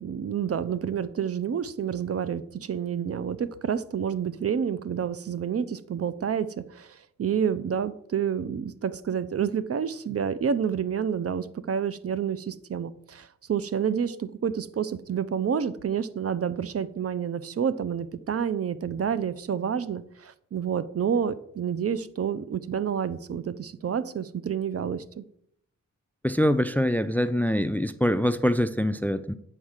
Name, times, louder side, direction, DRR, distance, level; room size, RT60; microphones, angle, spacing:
voice 1, 0.0-25.2, right 7 dB, 50° right, 14 dB, 0.5 m, -29 dB
voice 2, 26.2-29.3, left 1 dB, 5° left, 12 dB, 0.4 m, -24 dB
7.4 x 4.6 x 6.4 m, 0.72 s
cardioid pair, 75°, 30 cm